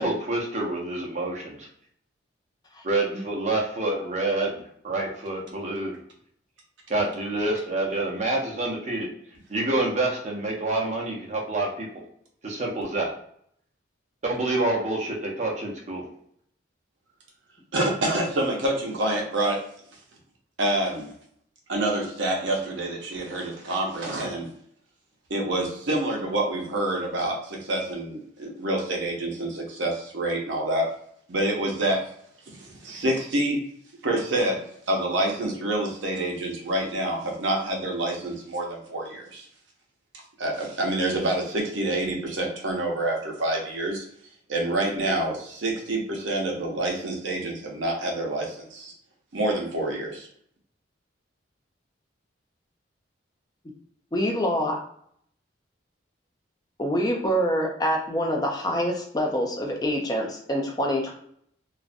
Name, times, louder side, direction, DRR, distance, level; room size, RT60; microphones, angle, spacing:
voice 1, 0.0-1.7 2.8-4.6 4.8-6.0 6.9-9.1 9.5-11.9 12.4-13.1 14.2-16.0, right 2 dB, 35° right, -1 dB, 0.6 m, -27 dB
voice 2, 17.7-19.6 20.6-21.1 21.7-24.5 25.3-30.9 31.3-32.0 32.5-33.6 34.0-34.6 34.9-39.5 40.4-44.0 44.5-48.9 49.3-50.3, right 1 dB, 70° right, 0 dB, 0.7 m, -27 dB
voice 3, 54.1-54.8 56.8-61.1, equal, 20° left, 0 dB, 0.4 m, -26 dB
2.4 x 2.0 x 2.5 m, 0.66 s
head